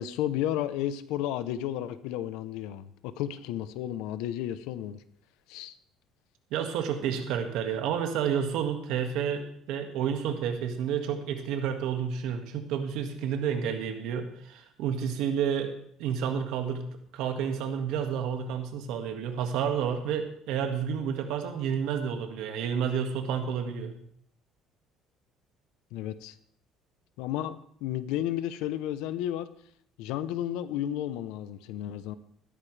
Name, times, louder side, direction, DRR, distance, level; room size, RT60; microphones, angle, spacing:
voice 1, 0.0-5.0 5.5-5.7 25.9-26.3 27.2-27.6 27.8-29.5 30.0-32.1, left 12 dB, 90° left, 14 dB, 0.8 m, -32 dB
voice 2, 6.5-15.7 16.0-16.9 17.1-24.0, right 7 dB, 80° right, 5 dB, 2.0 m, -30 dB
15.0 x 12.5 x 3.4 m, 0.65 s
cardioid pair, 125°, 0 cm